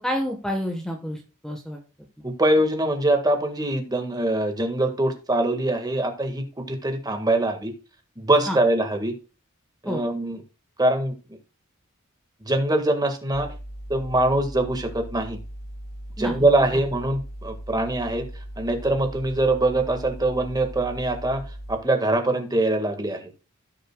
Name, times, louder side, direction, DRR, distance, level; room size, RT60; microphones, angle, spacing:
voice 1, 0.0-1.8 8.5-8.6 9.8-10.0 16.2-16.8, equal, 5° left, 2 dB, 1.2 m, -29 dB
voice 2, 2.2-7.7 8.2-9.1 9.8-10.4 10.8-11.1 12.5-13.5 13.9-15.4 16.2-18.3 18.6-21.4 21.7-23.2, right 1 dB, 20° right, 4 dB, 1.7 m, -23 dB
sound 1, 13.3-21.8, equal, 35° left, 3.9 m, -38 dB
16.5 x 6.6 x 2.3 m, 0.32 s
head